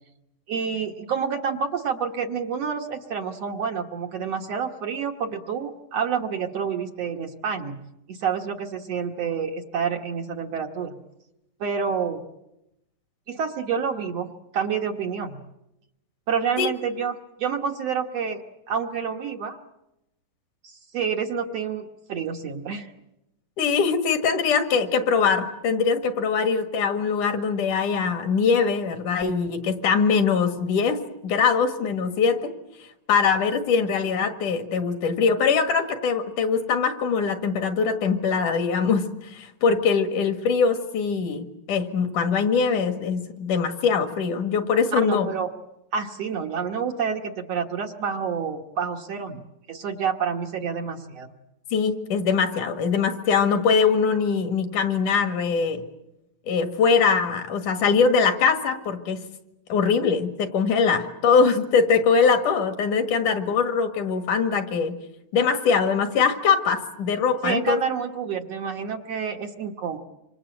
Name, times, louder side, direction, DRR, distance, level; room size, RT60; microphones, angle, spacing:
voice 1, 0.5-7.8 8.1-10.9 11.6-12.2 13.3-14.3 14.5-15.4 16.3-19.6 20.6-22.9 44.9-45.5 45.9-49.4 49.7-51.3 67.4-70.0, right 6 dB, 55° right, 3 dB, 2.1 m, -28 dB
voice 2, 23.6-31.0 31.2-32.5 33.1-45.3 51.7-55.8 56.5-59.2 59.7-65.0 65.3-67.8, left 5 dB, 65° left, 7 dB, 3.2 m, -22 dB
27.0 x 26.0 x 7.8 m, 0.89 s
omnidirectional pair, 3.9 m